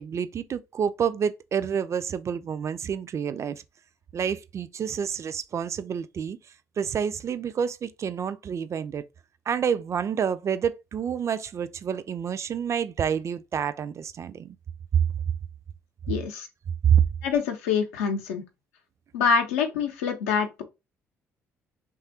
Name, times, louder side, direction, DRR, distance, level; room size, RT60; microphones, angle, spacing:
voice 1, 0.0-3.6 4.1-6.4 6.8-9.0 9.5-14.6 14.9-15.0 16.9-17.0, right 8 dB, 40° right, 0.3 m, -28 dB
voice 2, 16.1-16.5 17.2-18.4 19.1-20.6, left 6 dB, 75° left, 0.6 m, -25 dB
3.2 x 2.3 x 2.8 m
figure-of-eight pair, 45°, 7 cm